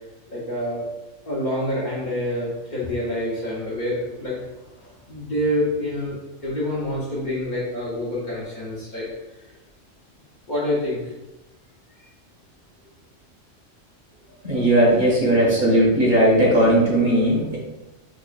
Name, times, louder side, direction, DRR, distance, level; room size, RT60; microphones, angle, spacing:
voice 1, 0.3-0.9 1.2-4.4 4.8-6.2 6.4-9.1 10.5-11.1, left 1 dB, 45° left, -6 dB, 0.7 m, -27 dB
voice 2, 14.4-17.6, right 1 dB, 40° right, -5 dB, 1.0 m, -17 dB
4.9 x 2.3 x 2.3 m, 1.0 s
omnidirectional pair, 1.3 m